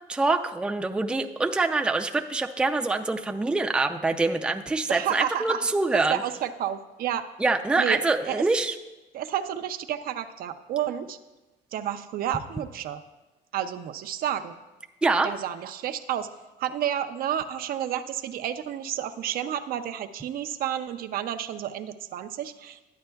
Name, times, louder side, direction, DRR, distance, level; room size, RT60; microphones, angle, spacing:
voice 1, 0.1-6.2 7.4-8.8 15.0-15.3, right 3 dB, 5° right, 4 dB, 0.4 m, -25 dB
voice 2, 4.9-5.6 5.9-7.3 7.8-8.4 9.1-11.2 11.7-13.0 13.5-14.6 15.2-16.3 16.6-22.8, right 10 dB, 60° right, 9 dB, 0.5 m, -30 dB
11.5 x 8.6 x 2.3 m, 1.1 s
cardioid pair, 110°, 17 cm